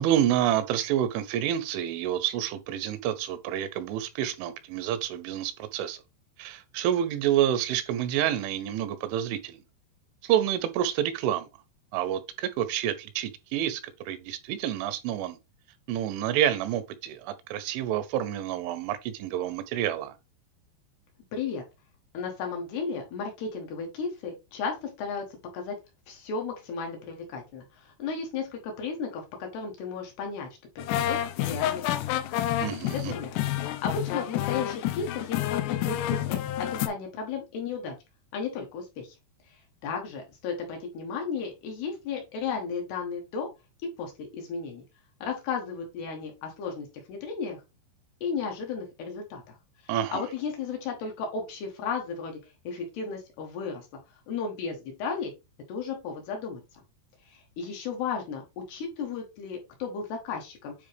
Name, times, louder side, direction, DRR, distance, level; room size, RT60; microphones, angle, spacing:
voice 1, 0.0-6.0 6.4-9.6 10.2-11.5 11.9-15.4 15.9-20.1 32.6-33.1 49.9-50.2, right 11 dB, 80° right, 3.0 m, -28 dB
voice 2, 21.3-21.6 22.1-25.2 25.5-25.8 26.1-30.5 30.8-32.0 32.9-36.4 36.7-38.0 38.3-39.1 39.8-43.5 44.0-44.8 45.2-47.6 48.2-49.5 50.1-52.4 52.6-53.9 54.3-55.3 55.7-56.6 57.3-58.4 58.7-60.7, left 5 dB, 70° left, 2.9 m, -34 dB
sound 1, 30.8-36.9, left 13 dB, 85° left, 2.4 m, -29 dB
9.5 x 3.6 x 3.3 m
omnidirectional pair, 5.6 m